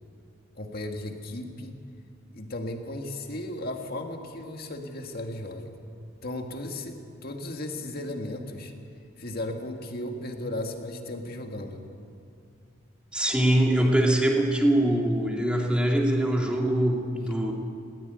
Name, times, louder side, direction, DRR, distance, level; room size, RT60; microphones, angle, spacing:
voice 1, 0.6-1.8 2.3-5.7 6.2-8.7 9.2-11.9, left 1 dB, 50° left, 4 dB, 2.1 m, -35 dB
voice 2, 13.1-17.5, right 1 dB, 5° right, -1 dB, 2.7 m, -23 dB
20.5 x 17.5 x 9.5 m, 2.4 s
head